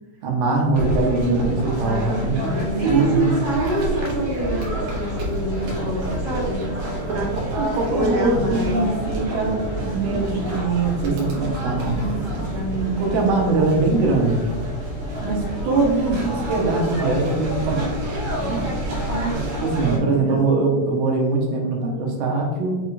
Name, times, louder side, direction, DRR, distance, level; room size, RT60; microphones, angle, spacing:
voice 1, 0.2-3.3 7.5-12.5 13.0-14.6 15.2-17.9 18.4-18.7 19.6-22.8, right 3 dB, 90° right, 0 dB, 2.6 m, -22 dB
sound 1, 0.7-20.0, right 1 dB, 70° right, 2.4 m, -28 dB
voice 2, 0.9-6.6 7.1-7.3 7.9-8.8 12.4-13.7 19.1-19.4 19.8-20.5, right 2 dB, 45° right, -8 dB, 1.7 m, -27 dB
sound 2, 2.1-19.6, left 3 dB, 80° left, 2.4 m, -36 dB
5.8 x 3.0 x 2.3 m, 1.4 s
omnidirectional pair, 4.2 m